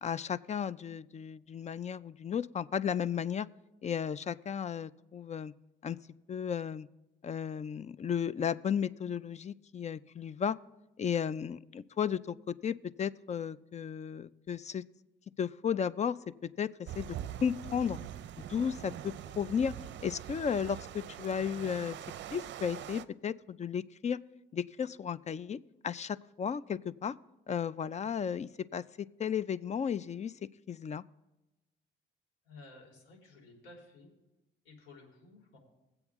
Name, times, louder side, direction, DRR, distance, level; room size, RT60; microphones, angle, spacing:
voice 1, 0.0-3.5 3.8-5.5 5.8-6.0 6.3-6.9 7.2-10.6 11.0-14.8 15.4-16.2 16.6-16.7 16.9-17.1 17.4-18.0 18.4-19.7 20.0-22.0 22.3-24.2 24.5-25.6 25.8-27.1 27.5-28.8 29.2-30.3 30.7-31.0, left 7 dB, 35° left, 18 dB, 0.4 m, -34 dB
sound 1, 16.9-23.0, right 11 dB, 65° right, 0.5 m, -43 dB
voice 2, 32.4-34.1 34.6-35.6, left 2 dB, 80° left, 0 dB, 3.7 m, -54 dB
21.0 x 7.9 x 3.6 m, 1.0 s
cardioid pair, 90°, 20 cm